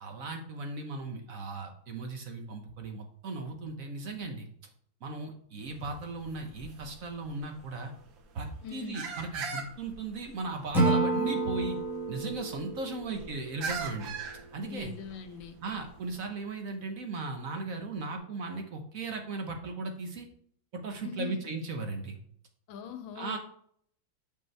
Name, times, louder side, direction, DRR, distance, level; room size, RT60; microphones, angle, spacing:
voice 1, 0.0-4.5 5.0-7.9 8.3-11.8 12.1-14.1 14.5-14.9 15.6-20.3 20.7-22.2 23.1-23.4, right 3 dB, 55° right, 1.1 m, -37 dB
sound 1, 5.6-16.2, right 5 dB, 70° right, 1.8 m, -43 dB
voice 2, 8.6-9.1 14.7-15.6 21.0-21.4 22.7-23.4, left 7 dB, 75° left, 1.5 m, -41 dB
Acoustic guitar / Strum, 10.7-13.9, right 2 dB, ahead, 1.4 m, -29 dB
7.6 x 5.3 x 3.2 m
omnidirectional pair, 2.2 m